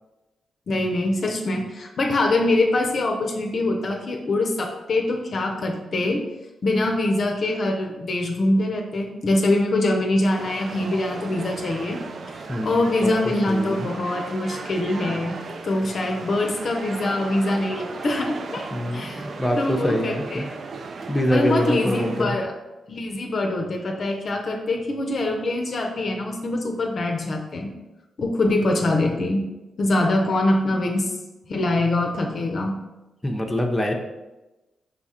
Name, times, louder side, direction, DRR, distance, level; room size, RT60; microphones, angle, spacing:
voice 1, 0.7-6.2 6.6-12.0 12.3-15.4 15.6-19.3 19.6-20.5 21.3-22.6 22.9-27.7 28.2-29.5 29.8-31.2 31.5-32.8, left 2 dB, 55° left, 2 dB, 0.5 m, -24 dB
sound 1, 10.3-22.2, right 4 dB, 60° right, 0.4 m, -36 dB
voice 2, 12.5-13.2 13.5-13.9 18.7-20.5 21.1-22.3 33.2-33.9, left 1 dB, 20° left, 2 dB, 0.7 m, -24 dB
5.0 x 2.3 x 4.2 m, 1.1 s
supercardioid pair, 50°, 0 cm